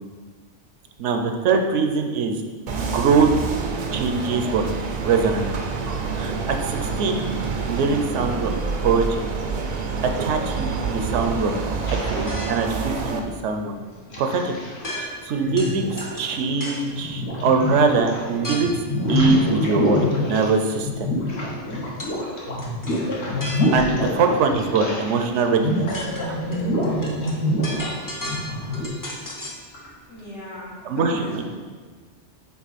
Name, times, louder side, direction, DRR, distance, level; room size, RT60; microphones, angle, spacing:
voice 1, 1.0-2.3 2.7-3.3 3.9-4.6 5.0-5.5 6.1-7.3 7.7-8.5 8.8-9.2 10.0-11.5 12.0-13.7 14.2-14.5 14.9-18.7 19.1-20.0 20.3-21.1 23.7-25.9 26.3-26.4 27.0-27.1 30.9-31.4, right 4 dB, 80° right, 5 dB, 0.9 m, -22 dB
sound 1, 2.7-13.2, right 4 dB, 50° right, 0.5 m, -27 dB
sound 2, 11.8-12.9 13.7-15.0 15.4-18.3 18.5-25.2 25.5-28.9, left 1 dB, 65° left, 1.4 m, -26 dB
sound 3, 12.3-12.8 14.8-15.3 15.6-16.9 18.4-18.8 22.0-22.2 22.6-24.0 25.3-25.4 25.8-29.7, equal, 20° left, 0.6 m, -35 dB
voice 2, 29.7-31.4, left 1 dB, 80° left, -9 dB, 2.4 m, -37 dB
6.0 x 4.0 x 4.1 m, 1.5 s
omnidirectional pair, 1.2 m